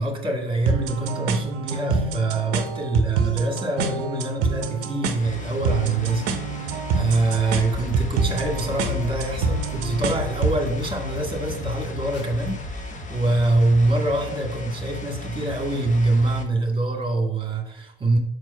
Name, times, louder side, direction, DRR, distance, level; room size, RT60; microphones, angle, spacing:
voice 1, 0.0-18.2, right 2 dB, 15° right, 2 dB, 2.0 m, -24 dB
sound 1, 0.7-10.6, right 5 dB, 55° right, 0.8 m, -27 dB
sound 2, 5.1-16.4, left 3 dB, 25° left, 1.1 m, -37 dB
sound 3, 7.5-12.8, left 4 dB, 55° left, 1.7 m, -34 dB
5.1 x 4.6 x 5.4 m, 0.77 s
hypercardioid pair, 70°, 30 cm